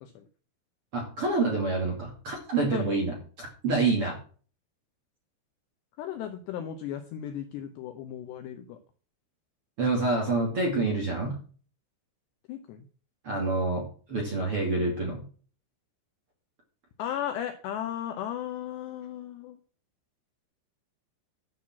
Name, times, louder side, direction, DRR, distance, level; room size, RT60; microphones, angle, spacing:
voice 1, 0.9-4.2 9.8-11.3 13.2-15.2, right 3 dB, 40° right, -1 dB, 2.3 m, -27 dB
voice 2, 2.6-3.0 6.0-8.8 12.5-12.9 17.0-19.6, left 10 dB, 80° left, 7 dB, 2.5 m, -36 dB
11.5 x 5.7 x 7.3 m, 0.41 s
omnidirectional pair, 5.9 m